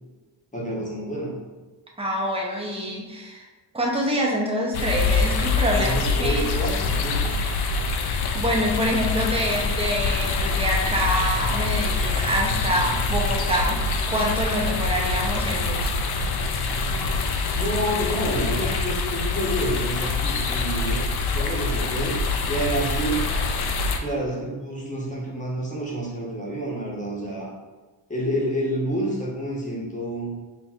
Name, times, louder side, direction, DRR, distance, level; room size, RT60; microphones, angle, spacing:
voice 1, 0.5-1.3 5.7-7.4 17.6-22.2 22.5-23.3 23.9-27.5 28.1-30.3, right 1 dB, 15° left, -4 dB, 0.9 m, -28 dB
voice 2, 2.0-3.5 3.7-6.5 8.0-13.8 14.1-15.9, equal, 15° right, -2 dB, 0.6 m, -26 dB
sound 1, 4.7-24.0, left 4 dB, 55° left, 0.5 m, -25 dB
5.7 x 2.7 x 2.3 m, 1.3 s
wide cardioid pair, 145°, 46 cm